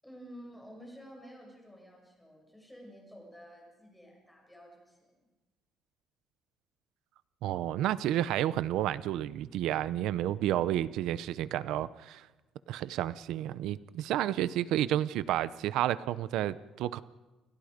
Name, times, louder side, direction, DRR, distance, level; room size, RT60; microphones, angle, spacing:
voice 1, 0.0-5.3, equal, 5° left, -1 dB, 7.2 m, -51 dB
voice 2, 7.4-12.3 12.7-17.0, right 12 dB, 75° right, 15 dB, 0.7 m, -31 dB
29.5 x 27.5 x 5.2 m, 1.2 s
cardioid pair, 175°, 0 cm